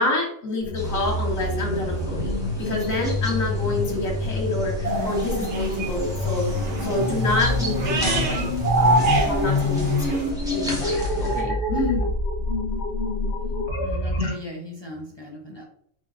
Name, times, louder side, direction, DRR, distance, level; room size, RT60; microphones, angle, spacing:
voice 1, 0.0-6.4 6.8-8.5 8.8-10.2 10.5-12.1, left 2 dB, 85° left, -2 dB, 1.8 m, -27 dB
sound 1, 0.6-14.3, left 2 dB, 55° left, 1.2 m, -27 dB
sound 2, 0.8-11.4, equal, 5° right, 1.2 m, -34 dB
sound 3, 4.8-10.3, right 2 dB, 60° right, 1.3 m, -26 dB
voice 2, 13.8-15.6, left 1 dB, 30° left, -1 dB, 0.5 m, -38 dB
4.5 x 4.1 x 2.5 m, 0.67 s
omnidirectional pair, 1.4 m